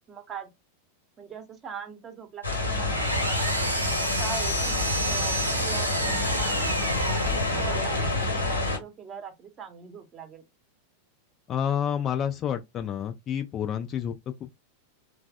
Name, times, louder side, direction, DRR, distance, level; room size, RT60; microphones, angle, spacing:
voice 1, 0.1-0.5 1.2-4.8 5.1-7.1 7.3-10.4, right 6 dB, 25° right, 0.7 m, -41 dB
sound 1, 2.4-8.8, left 2 dB, 75° left, 0.9 m, -28 dB
Engine, 2.5-8.2, right 1 dB, 85° right, 0.6 m, -30 dB
voice 2, 11.5-14.6, left 9 dB, 30° left, 0.3 m, -29 dB
3.2 x 2.1 x 2.3 m
figure-of-eight pair, 90°, 0 cm